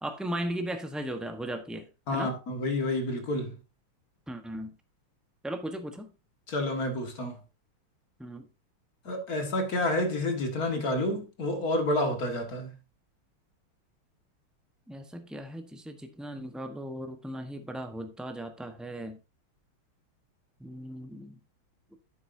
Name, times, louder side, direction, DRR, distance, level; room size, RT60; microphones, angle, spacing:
voice 1, 0.0-2.3 4.3-4.8 5.4-6.1 8.2-8.5 14.9-19.2 20.6-21.4, right 1 dB, ahead, 0.3 m, -37 dB
voice 2, 2.1-3.6 6.5-7.4 9.0-12.8, left 1 dB, 45° left, 2.2 m, -29 dB
10.5 x 8.1 x 2.7 m
omnidirectional pair, 2.4 m